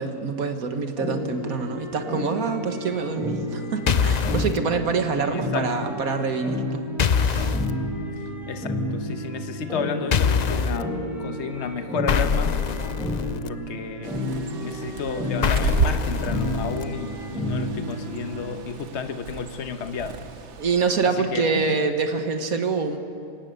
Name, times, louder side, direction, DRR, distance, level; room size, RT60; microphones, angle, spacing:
voice 1, 0.0-6.9 7.2-7.6 20.6-23.0, right 4 dB, 70° right, 6 dB, 1.9 m, -26 dB
sound 1, 1.0-18.4, left 1 dB, ahead, 3.6 m, -31 dB
sound 2, 3.9-4.6 7.0-7.7 10.1-10.8 12.1-13.5 15.4-16.8, left 6 dB, 85° left, 0.3 m, -23 dB
voice 2, 5.2-5.7 8.5-10.9 11.2-12.6 13.4-14.1 14.6-20.2 21.0-21.8, left 6 dB, 50° left, 8 dB, 1.3 m, -32 dB
Bird, 14.0-21.1, right 6 dB, 55° right, 1.2 m, -33 dB
24.5 x 18.0 x 6.7 m, 2.7 s
omnidirectional pair, 1.6 m